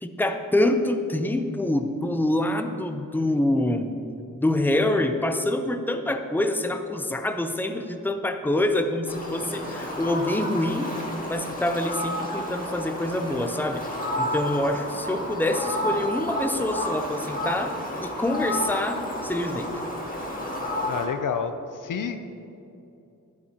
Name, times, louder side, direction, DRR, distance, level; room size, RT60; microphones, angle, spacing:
voice 1, 0.0-3.9 4.4-10.9 11.3-13.8 14.2-17.7 18.0-19.7, left 1 dB, 5° left, 7 dB, 0.7 m, -26 dB
Fowl, 9.1-21.0, equal, 25° left, 2.0 m, -31 dB
voice 2, 20.9-22.2, left 6 dB, 70° left, 8 dB, 0.6 m, -29 dB
11.0 x 9.1 x 2.9 m, 2.7 s
cardioid pair, 40°, 33 cm